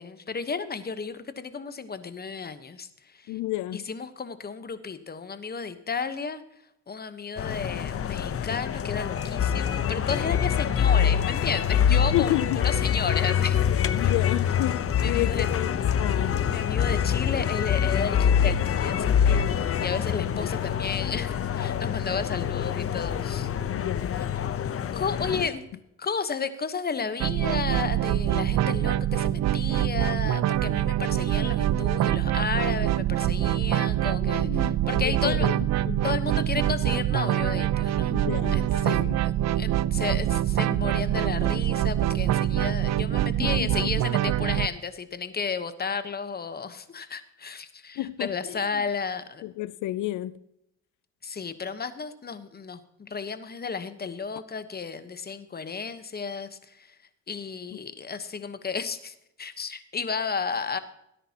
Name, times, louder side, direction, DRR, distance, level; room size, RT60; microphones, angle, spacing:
voice 1, 0.0-3.3 3.7-6.4 6.9-13.6 14.0-14.1 15.0-15.5 16.5-23.5 24.2-24.3 24.9-25.6 26.0-35.6 36.0-38.1 38.5-39.0 39.2-49.4 51.2-56.9 57.3-60.8, left 5 dB, 30° left, 1.1 m, -33 dB
voice 2, 3.3-3.8 11.9-12.6 13.7-16.4 20.2-20.5 23.7-24.2 34.2-36.0 38.0-38.6 38.9-39.2 43.4-43.5 43.8-43.9 48.0-48.6 49.4-50.4, left 15 dB, 80° left, 0.5 m, -31 dB
sound 1, 7.4-25.5, left 8 dB, 50° left, 0.8 m, -25 dB
sound 2, 27.2-44.7, right 12 dB, 60° right, 0.5 m, -25 dB
17.5 x 10.0 x 2.9 m
cardioid pair, 90°, 30 cm